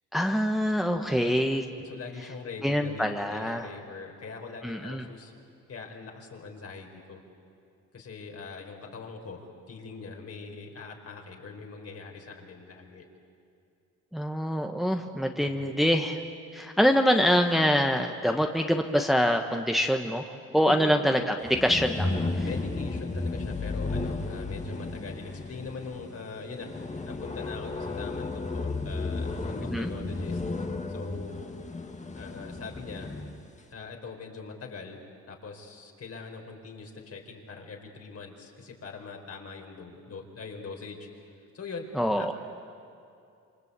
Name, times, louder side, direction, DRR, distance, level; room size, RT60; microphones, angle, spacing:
voice 1, 0.1-1.7 2.6-3.7 4.6-5.0 14.1-16.2 16.5-20.2 20.5-22.1 22.4-22.5 29.7-29.9 41.9-42.3, equal, ahead, 4 dB, 1.4 m, -25 dB
voice 2, 1.5-5.3 5.7-7.2 7.9-13.0 15.4-15.7 20.7-20.9 22.4-30.4 30.9-31.5 32.1-33.1 33.7-35.0 35.3-41.3 41.5-41.9 42.2-42.3, left 4 dB, 50° left, 2 dB, 4.8 m, -42 dB
sound 1, 21.4-33.4, left 3 dB, 25° left, 2.0 m, -33 dB
27.5 x 26.0 x 8.3 m, 2.6 s
cardioid pair, 90°, 30 cm